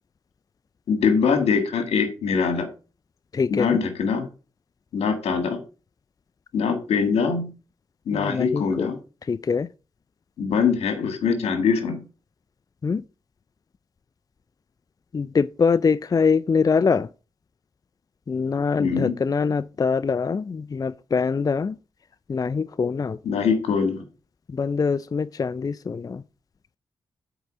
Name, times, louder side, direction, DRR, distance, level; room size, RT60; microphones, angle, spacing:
voice 1, 0.9-2.7 3.5-4.3 4.9-5.6 6.5-7.5 8.1-9.0 10.4-12.0 18.8-19.1 23.2-24.0, left 5 dB, 90° left, 1.7 m, -23 dB
voice 2, 3.3-3.8 8.1-8.9 9.3-9.7 12.8-13.0 15.1-17.1 18.3-21.8 22.3-23.2 24.5-26.2, left 5 dB, 35° left, 0.4 m, -23 dB
8.0 x 4.6 x 6.1 m
cardioid pair, 55°, 10 cm